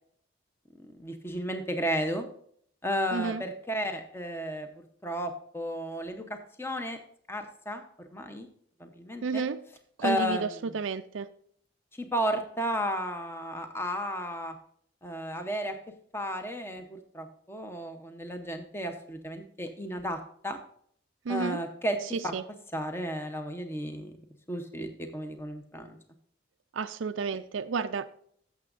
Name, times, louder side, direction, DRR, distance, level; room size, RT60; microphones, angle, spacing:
voice 1, 0.9-2.3 2.8-7.0 7.3-7.8 8.1-8.5 8.8-9.4 10.0-10.7 11.9-14.5 15.0-15.8 16.1-20.2 20.4-20.6 21.3-22.0 22.2-22.3 22.7-24.2 24.5-26.0, equal, 10° left, 0.8 m, -33 dB
voice 2, 3.1-3.4 9.2-9.6 10.0-11.3 21.2-21.6 22.1-22.4 26.7-28.1, right 5 dB, 90° right, 0.5 m, -31 dB
15.0 x 7.0 x 2.6 m
head